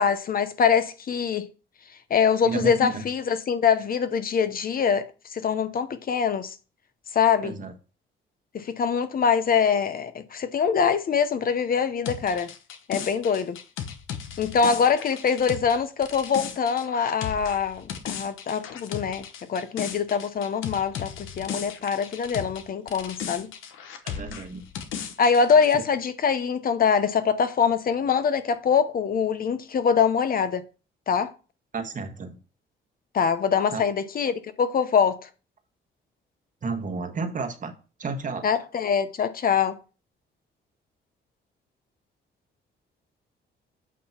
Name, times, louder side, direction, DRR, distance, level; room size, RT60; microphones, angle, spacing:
voice 1, 0.0-1.5 2.1-5.0 5.3-6.5 7.1-7.6 8.5-12.5 12.9-13.6 14.4-23.5 25.2-30.6 31.1-31.3 33.1-35.3 38.4-39.8, left 6 dB, 45° left, 0.7 m, -24 dB
voice 2, 2.4-3.0 7.4-7.7 24.0-24.6 31.7-32.4 33.7-33.8 36.6-37.7 38.0-38.5, right 4 dB, 40° right, 1.2 m, -31 dB
sound 1, 12.0-22.6 22.9-25.7, left 8 dB, 85° left, 1.0 m, -36 dB
8.3 x 2.9 x 5.8 m
cardioid pair, 90°, 20 cm